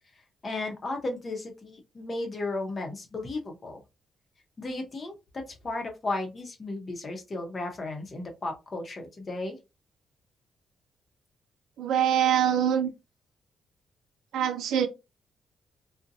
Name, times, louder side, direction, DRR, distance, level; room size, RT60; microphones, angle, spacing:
voice 1, 0.4-3.8 4.6-5.1 5.6-9.6, left 2 dB, 40° left, 0.8 m, -34 dB
voice 2, 11.8-12.9 14.3-14.9, right 9 dB, 80° right, 0.4 m, -24 dB
2.6 x 2.2 x 2.6 m
cardioid pair, 85°, 0 cm